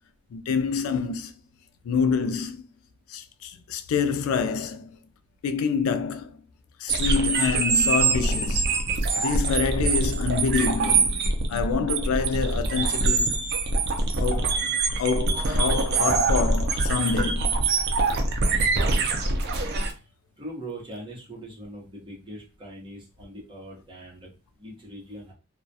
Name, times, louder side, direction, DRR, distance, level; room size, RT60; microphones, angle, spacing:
voice 1, 0.3-1.3 1.8-2.6 3.1-5.0 5.4-6.4 6.8-8.7 9.2-11.2 11.5-13.4 14.2-14.6 15.0-17.6, left 5 dB, 85° left, 0.3 m, -27 dB
sound 1, 6.9-19.9, right 3 dB, 55° right, 0.4 m, -24 dB
voice 2, 20.4-24.3 24.6-25.3, right 1 dB, 25° right, 0.8 m, -41 dB
2.2 x 2.2 x 2.6 m
head